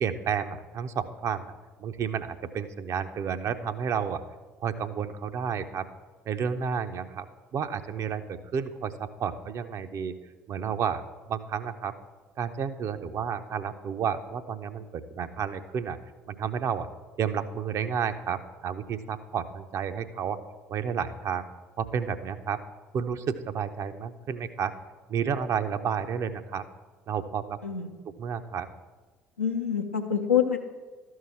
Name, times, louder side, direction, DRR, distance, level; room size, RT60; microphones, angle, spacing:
voice 1, 0.0-1.5 1.8-4.2 4.6-5.9 6.3-7.3 7.5-10.1 10.5-11.9 12.4-16.0 16.3-16.9 17.2-20.4 20.7-21.5 21.8-22.6 22.9-24.7 25.1-26.6 27.1-27.6 28.2-28.7, right 7 dB, 45° right, 9 dB, 0.6 m, -31 dB
voice 2, 27.6-28.0 29.4-30.6, left 8 dB, 85° left, 3 dB, 0.7 m, -26 dB
12.5 x 4.7 x 7.0 m, 1.3 s
figure-of-eight pair, 55°, 7 cm